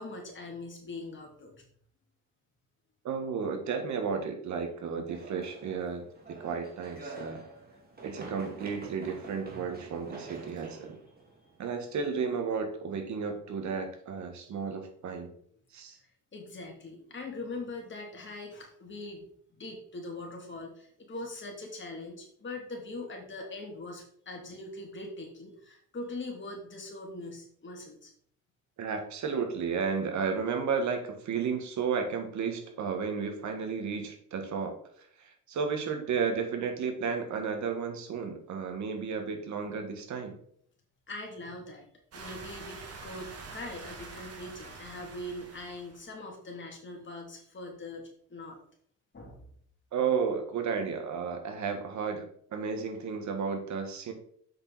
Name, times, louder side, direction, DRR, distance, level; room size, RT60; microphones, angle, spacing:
voice 1, 0.0-1.6 16.3-19.3 19.5-28.1 40.1-40.2 41.1-41.9 42.1-48.6 49.1-49.4, left 2 dB, 40° left, 0 dB, 3.0 m, -42 dB
voice 2, 3.0-7.4 8.0-11.0 11.6-15.3 15.7-16.0 28.8-34.8 35.5-40.3 49.9-52.3 52.5-54.1, right 6 dB, 70° right, 5 dB, 1.8 m, -33 dB
sound 1, 5.1-12.2, right 2 dB, 30° right, 2.4 m, -47 dB
sound 2, 42.1-46.0, right 4 dB, 55° right, 1.9 m, -46 dB
7.7 x 6.3 x 4.2 m, 0.63 s
cardioid pair, 90°, 30 cm